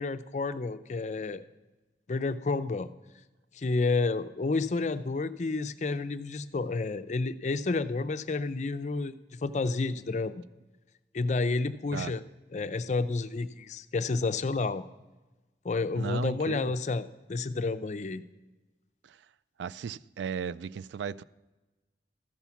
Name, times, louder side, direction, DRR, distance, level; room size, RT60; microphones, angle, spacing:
voice 1, 0.0-1.4 2.1-2.9 3.5-10.4 11.1-12.2 12.5-14.8 15.6-18.2, left 3 dB, 40° left, 0.4 m, -30 dB
voice 2, 16.0-16.7 19.0-19.3 19.6-21.2, right 6 dB, 80° right, 0.3 m, -36 dB
13.5 x 5.9 x 7.0 m
head